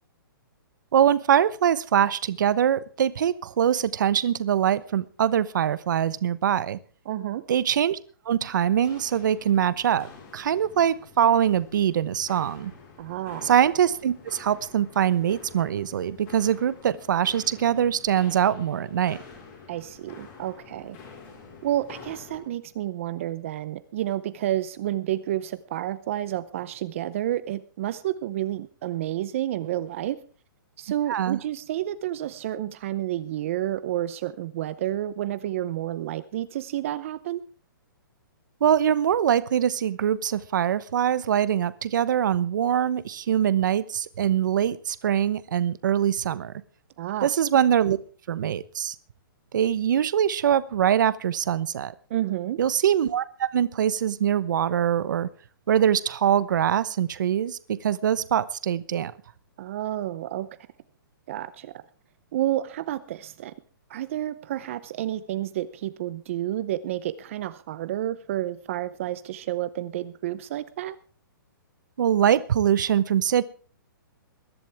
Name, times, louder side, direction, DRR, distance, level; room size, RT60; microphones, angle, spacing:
voice 1, 0.9-6.8 7.5-8.0 8.2-12.7 13.4-19.2 31.1-31.4 38.6-46.5 47.2-48.0 48.3-48.9 49.5-51.9 52.6-55.3 55.7-59.1 72.0-73.4, right 9 dB, 60° right, 16 dB, 1.0 m, -23 dB
voice 2, 7.1-7.4 13.0-13.5 19.7-21.0 21.6-30.2 30.8-37.4 47.0-47.3 52.1-52.6 59.6-60.5 61.3-61.7 62.3-63.5 63.9-71.0, right 13 dB, 35° right, 14 dB, 0.7 m, -30 dB
Walk footsteps, 8.7-22.5, left 5 dB, 25° left, 4.6 m, -48 dB
21.5 x 11.0 x 3.5 m, 0.40 s
hypercardioid pair, 165°, 12 cm